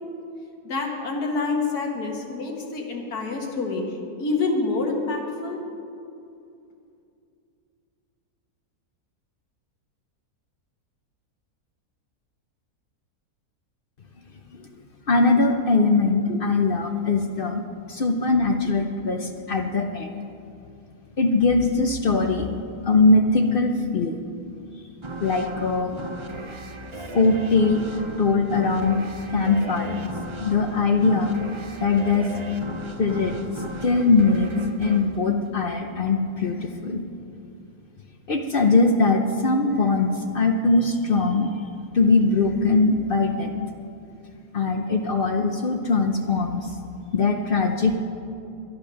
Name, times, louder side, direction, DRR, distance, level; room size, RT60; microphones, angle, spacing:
voice 1, 0.6-5.6, left 3 dB, 80° left, 1 dB, 2.2 m, -27 dB
voice 2, 15.1-20.2 21.2-22.5 22.8-24.2 25.2-26.0 26.4-26.5 27.1-30.1 30.4-31.4 31.8-32.3 33.0-33.3 33.8-37.0 38.3-41.6 41.9-43.5 44.5-46.7 47.1-48.0, left 3 dB, 50° left, 5 dB, 0.7 m, -21 dB
sound 1, 25.0-36.2, right 2 dB, 40° right, 0.4 m, -37 dB
12.0 x 10.5 x 6.4 m, 2.5 s
omnidirectional pair, 1.6 m